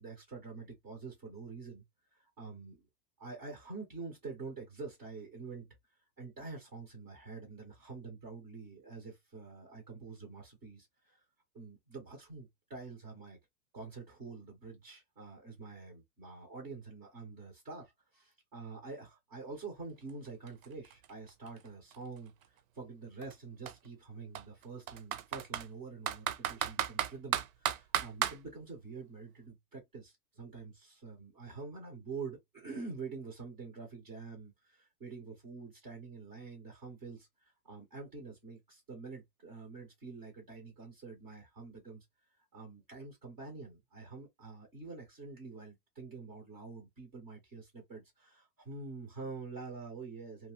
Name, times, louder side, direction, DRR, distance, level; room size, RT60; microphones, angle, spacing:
voice 1, 0.0-1.8 2.1-2.9 3.2-5.7 6.2-11.2 11.5-13.4 13.7-22.3 22.7-42.0 42.5-50.5, right 4 dB, 15° right, 0.3 m, -46 dB
Computer keyboard, 20.1-20.2 20.5-22.4 23.2-23.3 23.7-23.8 24.3-25.7 26.1-28.4, right 10 dB, 65° right, 0.6 m, -34 dB
2.6 x 2.3 x 2.9 m
hypercardioid pair, 145°, 45 cm